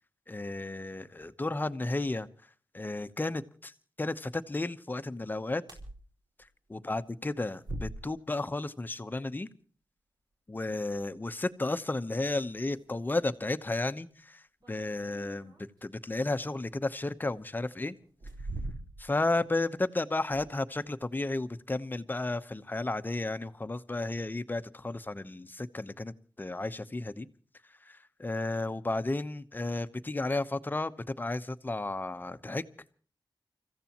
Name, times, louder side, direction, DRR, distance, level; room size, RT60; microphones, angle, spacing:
voice 1, 0.3-2.3 2.7-3.7 4.0-5.6 6.7-9.5 10.5-15.5 15.8-18.0 19.0-27.3 27.8-32.7, left 2 dB, 25° left, 11 dB, 0.9 m, -33 dB
sound 1, 5.7-6.0 6.4-6.5 7.6-8.4 11.1-11.2 12.3-12.4 12.7-12.8 13.4-13.5 14.6-16.0 17.0-17.1 18.0-19.2 19.6-19.7 20.2-20.8 21.1-21.5, right 2 dB, 60° right, 4.3 m, -42 dB
30.0 x 15.0 x 3.0 m, 0.43 s
wide cardioid pair, 110°, 8 cm